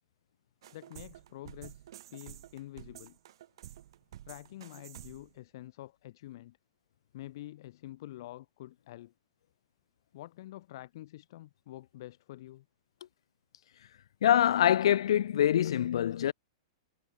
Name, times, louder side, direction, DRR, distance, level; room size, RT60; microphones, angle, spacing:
sound 1, 0.6-5.4, right 12 dB, 65° right, 2.4 m, -50 dB
voice 1, 0.7-3.2 4.2-6.6 7.1-9.1 10.1-12.7, left 15 dB, 55° left, 2.4 m, -47 dB
voice 2, 14.2-16.3, left 10 dB, 75° left, 0.3 m, -24 dB
hypercardioid pair, 160°, 3 cm